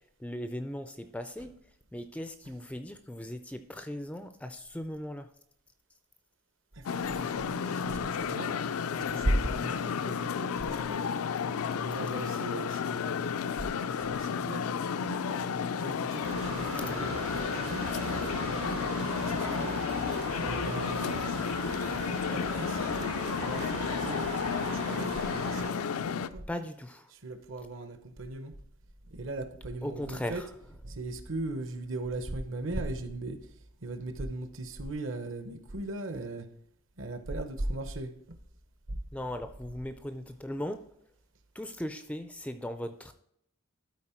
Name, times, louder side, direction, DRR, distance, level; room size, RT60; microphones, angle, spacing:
voice 1, 0.2-1.5 1.9-5.3 16.1-16.2 16.7-16.8 26.5-27.1 29.8-30.5 39.1-40.9 41.5-43.1, left 1 dB, 5° left, 0.3 m, -38 dB
voice 2, 6.8-8.6 8.9-11.0 11.7-15.2 15.8-17.9 18.4-19.8 20.4-21.4 22.0-23.2 23.5-24.4 24.6-26.5 27.1-28.5 29.1-30.4 30.8-33.4 33.8-36.5 37.0-38.4 38.9-39.0, right 2 dB, 60° right, 0.8 m, -38 dB
sound 1, 6.9-26.3, left 6 dB, 80° left, 0.4 m, -32 dB
sound 2, 16.2-25.7, right 3 dB, 75° right, 1.6 m, -39 dB
12.5 x 4.2 x 4.4 m
head